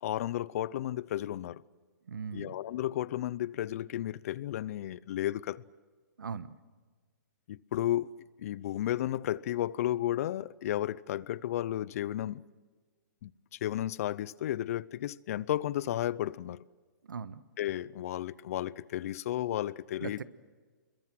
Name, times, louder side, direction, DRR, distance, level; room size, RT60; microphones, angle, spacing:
voice 1, 0.0-1.6 2.3-5.6 7.5-8.1 8.4-12.4 13.2-16.6 17.6-20.2, left 13 dB, 50° left, 0.7 m, -33 dB
voice 2, 2.1-2.5 6.2-6.6 17.1-17.4 20.0-20.2, right 6 dB, 85° right, 1.3 m, -39 dB
27.0 x 22.0 x 7.6 m
hypercardioid pair, 145°, 10 cm